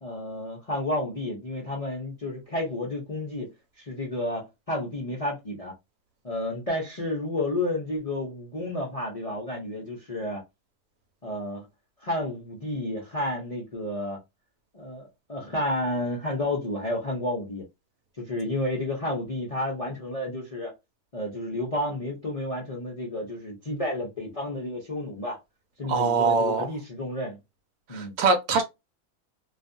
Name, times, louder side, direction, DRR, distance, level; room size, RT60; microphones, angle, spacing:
voice 1, 0.0-3.5 3.8-5.7 6.2-10.4 11.2-11.6 12.0-14.2 14.7-17.7 18.2-20.7 21.1-25.4 25.8-27.4 27.9-28.1, left 1 dB, 50° left, 0.4 m, -31 dB
voice 2, 25.8-26.7 27.9-28.6, right 4 dB, 85° right, 1.1 m, -23 dB
2.4 x 2.3 x 2.5 m
omnidirectional pair, 1.6 m